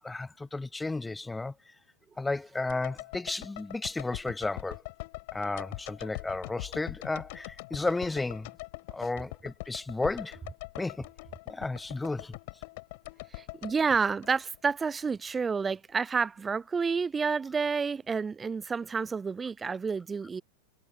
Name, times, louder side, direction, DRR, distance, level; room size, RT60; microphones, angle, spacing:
voice 1, 0.0-1.5 2.2-4.8 5.3-8.5 8.9-10.4 10.8-11.1 11.5-12.4, left 3 dB, 10° left, 1.2 m, -33 dB
sound 1, 2.7-14.9 15.1-15.2, left 24 dB, 50° left, 4.4 m, -43 dB
voice 2, 13.3-20.4, right 5 dB, 15° right, 0.5 m, -29 dB
figure-of-eight pair, 90°, 0 cm